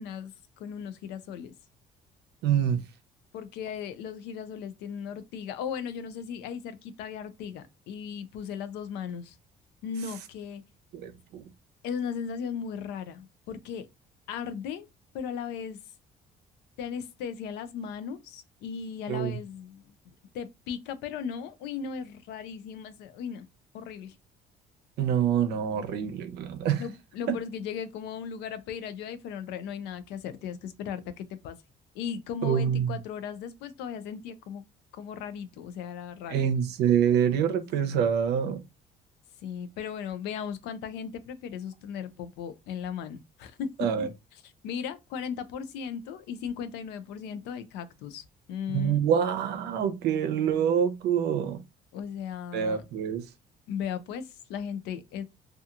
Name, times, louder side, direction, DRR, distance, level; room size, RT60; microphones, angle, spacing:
voice 1, 0.0-1.5 3.3-9.4 9.8-10.6 11.8-13.9 14.3-14.9 15.1-15.8 16.8-19.9 20.3-23.5 23.7-24.1 26.8-31.6 31.9-34.7 34.9-36.4 39.4-43.7 44.4-48.2 48.5-49.0 51.9-52.8 53.7-55.2, left 7 dB, 90° left, 0.4 m, -37 dB
voice 2, 2.4-2.8 10.9-11.4 19.1-19.4 25.0-26.8 27.3-27.4 32.4-33.0 36.3-38.6 43.8-44.1 48.7-51.6 52.5-53.2, right 8 dB, 80° right, 0.6 m, -26 dB
2.8 x 2.3 x 2.4 m
cardioid pair, 110°, 17 cm